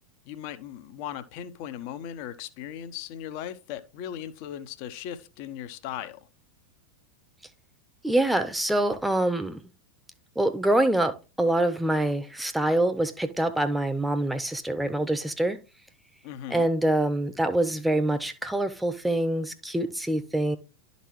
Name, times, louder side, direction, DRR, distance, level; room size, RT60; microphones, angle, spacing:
voice 1, 0.3-6.2 16.2-16.7, left 10 dB, 45° left, 0.8 m, -38 dB
voice 2, 8.0-9.6 10.4-15.6 16.5-20.6, right 1 dB, 5° right, 0.9 m, -25 dB
12.0 x 4.0 x 3.1 m
figure-of-eight pair, 90°, 0 cm